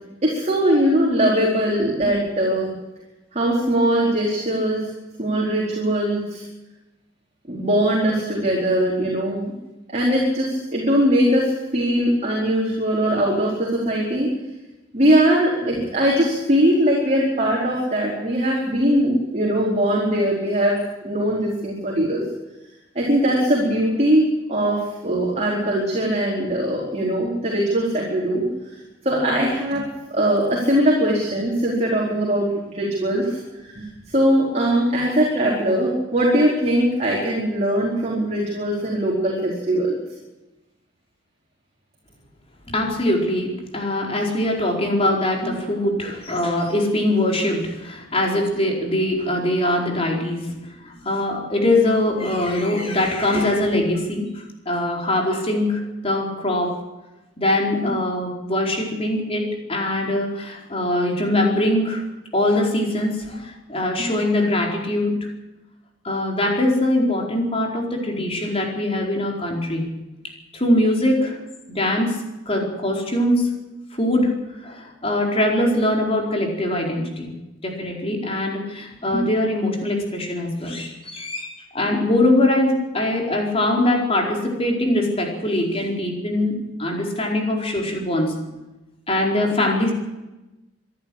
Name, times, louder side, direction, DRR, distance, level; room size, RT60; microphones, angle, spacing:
voice 1, 0.2-2.7 3.3-4.9 5.2-6.4 7.5-9.5 9.9-14.3 14.9-22.2 22.9-28.4 29.0-29.8 30.1-40.0, right 1 dB, 35° right, -3 dB, 4.6 m, -21 dB
voice 2, 42.7-56.8 57.4-62.0 62.3-65.2 66.0-69.9 70.2-71.4 71.7-73.5 73.9-74.3 74.6-77.3 77.6-88.3 89.1-89.9, left 1 dB, 30° left, 0 dB, 4.6 m, -22 dB
26.0 x 11.5 x 8.7 m, 1.0 s
head